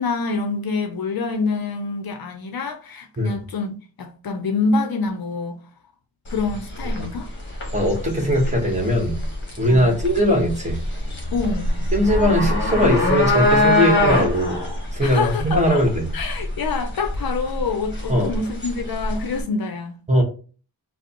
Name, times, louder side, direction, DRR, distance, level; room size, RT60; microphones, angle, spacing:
voice 1, 0.0-5.6 6.3-7.3 9.7-10.0 11.3-11.8 15.0-15.8 16.1-20.0, left 4 dB, 60° left, 0.5 m, -26 dB
sound 1, 6.3-19.4, left 1 dB, 25° left, 1.2 m, -24 dB
voice 2, 7.7-9.2 9.6-10.8 11.9-14.6 14.9-16.1 18.1-18.3 20.1-20.2, equal, 15° right, 1.2 m, -20 dB
4.9 x 2.0 x 2.9 m
wide cardioid pair, 135°, 42 cm